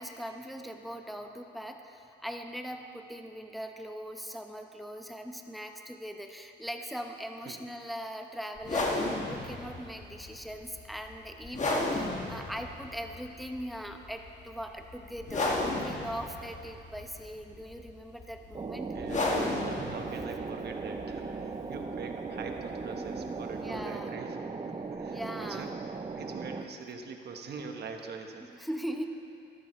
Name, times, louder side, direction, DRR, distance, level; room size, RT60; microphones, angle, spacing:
voice 1, 0.0-19.0 22.9-23.4 23.6-24.2 25.1-25.7 28.5-29.1, equal, ahead, 4 dB, 0.9 m, -40 dB
sound 1, 8.6-23.9, left 2 dB, 35° left, 1.6 m, -35 dB
sound 2, 18.5-26.6, right 4 dB, 25° right, 0.6 m, -38 dB
voice 2, 18.9-24.4 24.7-28.5, right 5 dB, 55° right, 4 dB, 1.2 m, -43 dB
14.0 x 12.5 x 3.2 m, 2.7 s
cardioid pair, 90°, 20 cm